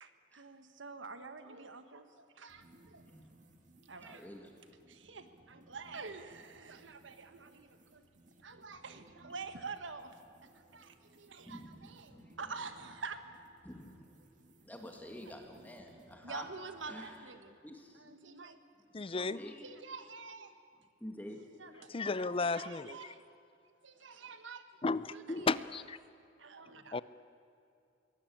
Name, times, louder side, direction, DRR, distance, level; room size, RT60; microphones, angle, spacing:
voice 1, 0.0-3.0 3.8-4.2 4.9-8.0 8.4-10.1 10.4-13.2 16.2-17.6 18.0-18.6 19.1-20.5 21.6-23.3 23.8-24.8 25.1-25.5 26.4-27.0, right 4 dB, 80° right, 9 dB, 1.4 m, -47 dB
sound 1, 2.5-17.3, right 1 dB, 45° right, 2.4 m, -63 dB
voice 2, 4.0-4.5 11.4-12.4 13.6-14.1 14.6-16.5 16.9-17.3 17.6-18.2 19.2-19.7 21.0-21.5, left 1 dB, 10° left, 3 dB, 1.8 m, -49 dB
voice 3, 18.9-19.4 21.9-23.1 24.8-26.0 26.9-27.0, left 3 dB, 30° left, 17 dB, 0.5 m, -34 dB
23.5 x 18.0 x 8.7 m, 2.5 s
head